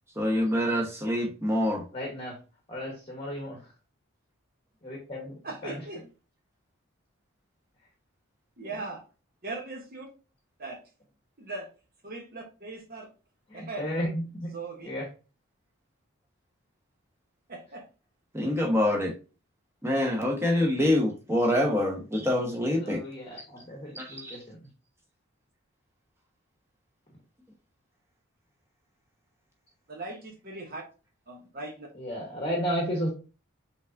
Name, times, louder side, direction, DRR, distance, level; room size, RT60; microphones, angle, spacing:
voice 1, 0.2-1.8 18.3-19.1 19.8-23.0 23.9-24.4, left 1 dB, 10° right, 1.0 m, -26 dB
voice 2, 1.9-2.4 2.7-3.6 4.8-5.8 13.5-14.5 14.8-15.1 22.8-24.6 31.9-33.1, equal, 25° left, 1.0 m, -33 dB
voice 3, 5.4-6.0 8.6-9.0 9.4-10.1 10.6-10.8 11.4-11.7 12.0-13.1 13.5-13.9 14.5-14.9 17.5-17.8 29.9-30.8 31.3-31.9, right 3 dB, 45° right, 0.9 m, -39 dB
5.2 x 3.5 x 2.5 m
head